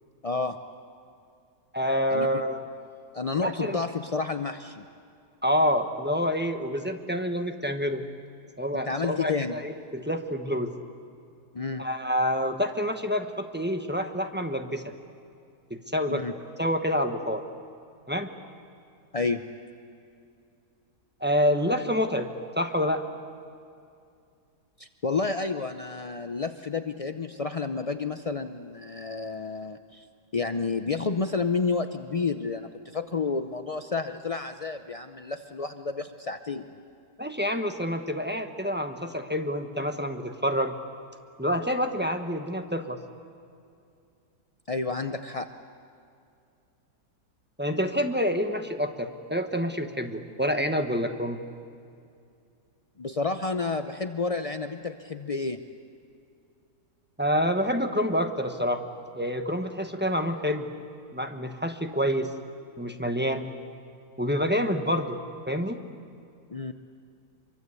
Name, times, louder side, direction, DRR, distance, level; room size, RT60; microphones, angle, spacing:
voice 1, 0.2-0.6 2.1-2.3 3.1-4.8 8.7-9.6 11.5-11.8 16.1-16.3 19.1-19.4 24.8-30.1 30.3-36.7 44.7-45.5 53.0-55.6 66.5-66.7, left 4 dB, 65° left, 8 dB, 0.3 m, -30 dB
voice 2, 1.7-2.6 3.4-3.8 5.4-8.0 8.6-10.7 11.8-14.9 15.7-16.3 16.6-17.4 18.1-18.3 21.2-22.3 22.6-23.0 37.2-40.7 41.4-43.0 47.6-51.4 57.2-58.8 59.1-60.7 61.1-62.3 62.8-63.5 64.2-65.2 65.5-65.8, equal, 5° right, 5 dB, 1.0 m, -27 dB
25.5 x 24.0 x 8.3 m, 2.4 s
omnidirectional pair, 1.7 m